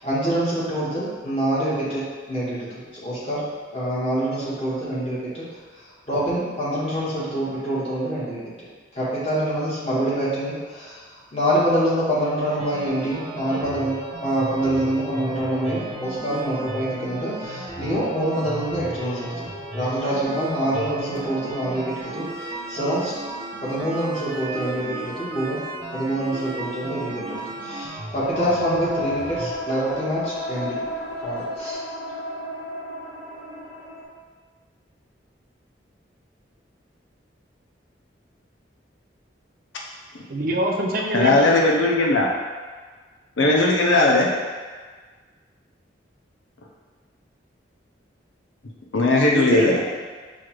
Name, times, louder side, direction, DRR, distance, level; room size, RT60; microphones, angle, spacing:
voice 1, 0.0-2.0 2.3-3.5 3.7-5.4 6.1-8.7 8.9-19.5 19.7-23.1 23.6-25.6 25.9-30.8 31.2-31.8, right 1 dB, 30° left, -10 dB, 1.4 m, -26 dB
sound 1, 12.5-29.5, right 2 dB, 35° right, 0.8 m, -35 dB
sound 2, 28.2-34.0, left 1 dB, 55° left, 1.2 m, -32 dB
voice 2, 40.3-41.7 49.3-50.1, right 1 dB, 50° right, 0 dB, 0.4 m, -25 dB
voice 3, 41.1-42.3 43.4-44.3 48.9-49.8, left 2 dB, 85° left, -2 dB, 0.6 m, -18 dB
6.3 x 2.4 x 3.0 m, 1.5 s
head